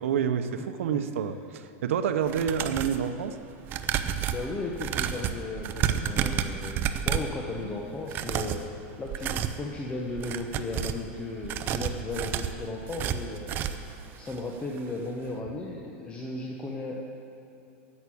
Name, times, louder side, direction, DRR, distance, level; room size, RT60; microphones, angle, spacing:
voice 1, 0.0-3.4, right 7 dB, 90° right, 10 dB, 0.7 m, -28 dB
sound 1, 2.2-3.0 3.6-7.4 8.0-8.7 9.1-9.6 10.1-11.0 11.4-13.9 14.3-14.4 14.7-14.8, right 9 dB, 30° right, 0.6 m, -30 dB
voice 2, 4.3-8.6 9.0-13.5 14.1-17.0, left 2 dB, 15° left, -1 dB, 1.0 m, -35 dB
11.0 x 8.1 x 8.5 m, 3.0 s
supercardioid pair, 155°, 7 cm